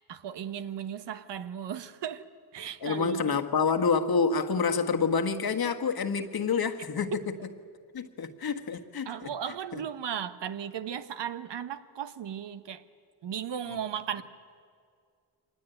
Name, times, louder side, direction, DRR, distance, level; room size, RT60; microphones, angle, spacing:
voice 1, 0.1-2.3 2.5-3.4 9.0-12.8 13.2-14.2, right 9 dB, 80° right, 11 dB, 1.1 m, -36 dB
voice 2, 2.8-7.3 7.9-9.3 9.7-9.8 13.7-13.8, left 5 dB, 60° left, 6 dB, 1.5 m, -28 dB
24.0 x 19.5 x 9.1 m, 2.2 s
cardioid pair, 70°, 41 cm